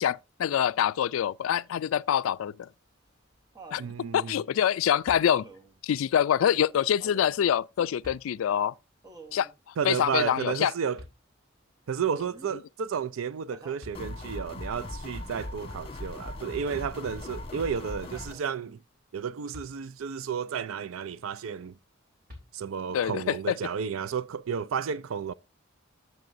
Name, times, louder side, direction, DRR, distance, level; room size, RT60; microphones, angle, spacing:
voice 1, 0.0-2.7 3.7-3.8 4.1-5.5 5.8-8.7 9.3-9.5 9.8-10.7 22.9-23.5, left 9 dB, 90° left, 0.3 m, -25 dB
Laughter, 2.6-3.9 5.3-5.8 7.0-7.4 9.0-9.6 12.1-12.6 13.5-13.9 16.2-16.7 18.1-18.8 20.2-20.3, right 3 dB, 20° right, 0.9 m, -50 dB
voice 2, 3.8-4.4 9.8-11.0 11.9-18.8 19.1-21.7 22.5-25.3, right 7 dB, 85° right, 0.4 m, -32 dB
sound 1, 5.0-5.8 7.3-7.4 8.0-8.8 11.0-11.7 13.5-13.6 13.8-14.6 16.3-16.4 16.7-17.4 19.5-20.3 22.3-23.0, left 2 dB, 50° right, 3.1 m, -51 dB
sound 2, 13.9-18.3, left 1 dB, 30° left, 1.4 m, -39 dB
10.5 x 7.5 x 2.6 m
head